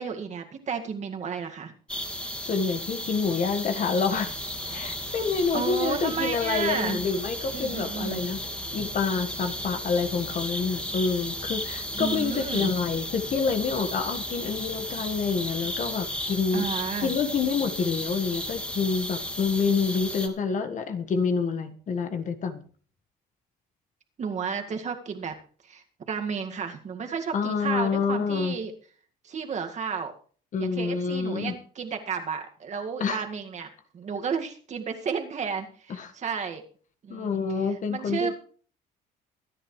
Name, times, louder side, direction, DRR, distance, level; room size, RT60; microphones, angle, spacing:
voice 1, 0.0-1.7 5.5-7.0 7.5-8.2 12.0-12.7 16.5-17.1 24.2-25.3 25.6-28.7 29.2-30.1 30.6-33.7 33.9-36.6 37.0-37.3 37.9-38.3, right 6 dB, 45° right, 4 dB, 2.1 m, -32 dB
sound 1, 1.9-20.3, left 1 dB, 5° left, 2.3 m, -34 dB
voice 2, 2.4-4.4 4.7-16.7 17.0-22.6 27.3-28.6 30.5-31.5 33.0-33.2 35.9-36.1 37.1-38.3, left 5 dB, 50° left, 8 dB, 1.6 m, -27 dB
sound 2, 4.2-17.5, equal, 25° right, 1.8 m, -47 dB
23.5 x 9.8 x 3.3 m, 0.43 s
cardioid pair, 110°, 17 cm